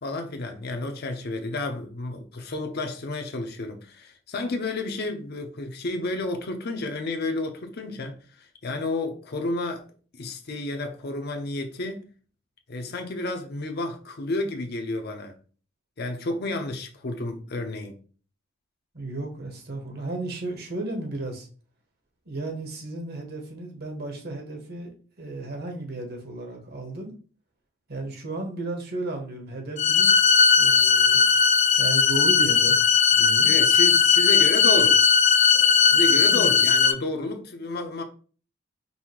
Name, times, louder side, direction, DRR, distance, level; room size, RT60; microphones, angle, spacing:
voice 1, 0.0-9.8 10.1-12.1 12.7-15.3 16.0-18.0 33.4-35.0 35.9-38.0, left 2 dB, 55° left, 0.7 m, -31 dB
voice 2, 18.9-21.5 22.3-24.9 25.2-27.1 27.9-30.2 30.6-31.3 31.8-33.5 35.5-36.6, right 2 dB, 55° right, 1.2 m, -34 dB
sound 1, 29.8-36.9, left 6 dB, 35° left, 0.3 m, -18 dB
5.5 x 2.6 x 3.0 m
head